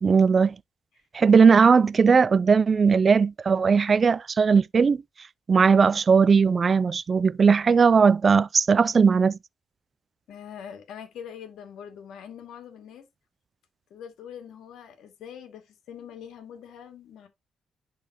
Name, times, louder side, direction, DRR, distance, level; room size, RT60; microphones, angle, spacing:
voice 1, 0.0-0.5 1.1-5.0 5.5-9.4, right 5 dB, 40° right, 0.4 m, -18 dB
voice 2, 10.3-13.1 13.9-17.3, left 8 dB, 80° left, 2.3 m, -43 dB
10.5 x 4.1 x 3.0 m
cardioid pair, 90°, 0 cm